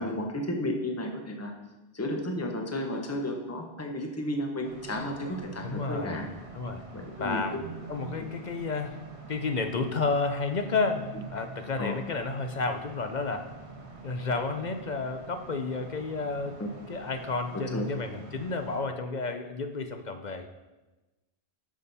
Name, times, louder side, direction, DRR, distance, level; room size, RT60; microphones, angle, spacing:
voice 1, 0.0-1.5 1.9-6.3 6.9-7.4 7.9-8.3 11.8-11.9 16.6-16.7 17.7-17.9, left 1 dB, 15° left, 2 dB, 1.0 m, -33 dB
sound 1, 4.6-18.8, right 3 dB, 65° right, 1.7 m, -45 dB
voice 2, 5.6-6.2 6.5-6.8 7.2-7.6 7.9-13.5 14.0-16.6 16.9-20.5, left 3 dB, 45° left, 7 dB, 0.7 m, -31 dB
12.5 x 6.1 x 4.2 m, 1.1 s
omnidirectional pair, 1.2 m